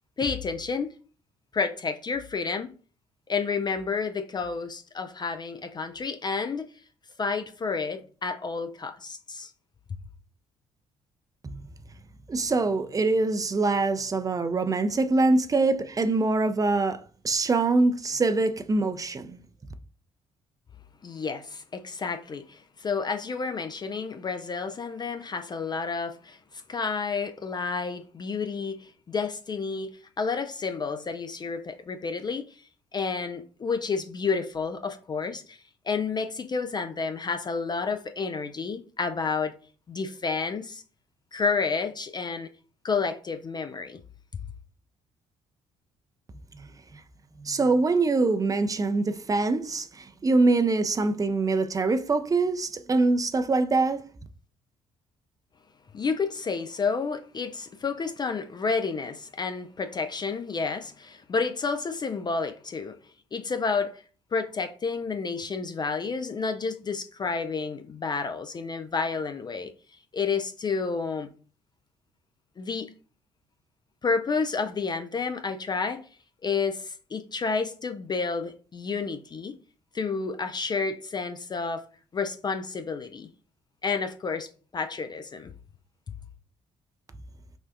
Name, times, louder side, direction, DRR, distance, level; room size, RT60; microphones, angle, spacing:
voice 1, 0.2-0.9 1.5-2.7 3.3-6.7 7.2-9.5 21.0-29.9 30.2-32.6 32.9-35.6 35.8-39.6 39.9-40.8 41.3-42.5 42.8-44.0 55.9-63.0 63.3-64.0 64.3-69.7 70.1-71.3 72.6-72.9 74.0-76.1 76.4-79.5 79.9-81.8 82.1-83.3 83.8-85.5, left 4 dB, 25° left, 0.4 m, -30 dB
voice 2, 12.3-17.0 17.2-19.4 47.4-49.9 50.2-54.0, right 3 dB, 20° right, 0.5 m, -24 dB
6.0 x 2.4 x 2.6 m
figure-of-eight pair, 45°, 16 cm